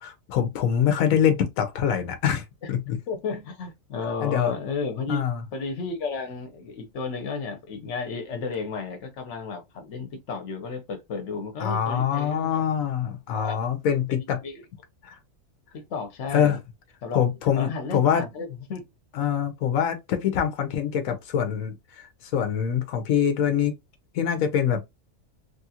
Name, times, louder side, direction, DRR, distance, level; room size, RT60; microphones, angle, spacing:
voice 1, 0.0-3.0 4.2-4.5 5.1-5.4 11.6-14.4 15.0-15.2 16.3-16.6 17.1-18.2 19.2-23.7 24.1-24.8, left 8 dB, 90° left, 1.1 m, -24 dB
voice 2, 3.1-5.2 5.5-12.6 13.3-13.6 14.2-14.6 15.7-16.6 17.0-17.2 17.5-18.8, left 4 dB, 65° left, 1.1 m, -33 dB
3.3 x 2.4 x 2.8 m
omnidirectional pair, 1.4 m